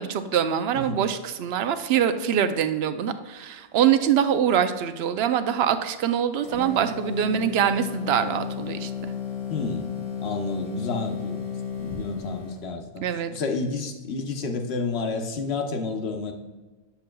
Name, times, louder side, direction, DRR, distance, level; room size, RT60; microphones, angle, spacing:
voice 1, 0.0-8.9 13.0-13.3, right 9 dB, 75° right, 10 dB, 0.8 m, -24 dB
sound 1, 6.4-12.7, left 7 dB, 35° left, 1.0 m, -33 dB
voice 2, 9.5-9.9 10.2-11.4 11.8-13.0 13.3-16.3, left 3 dB, 75° left, 5 dB, 1.1 m, -30 dB
8.0 x 6.9 x 2.3 m, 1.3 s
omnidirectional pair, 1.1 m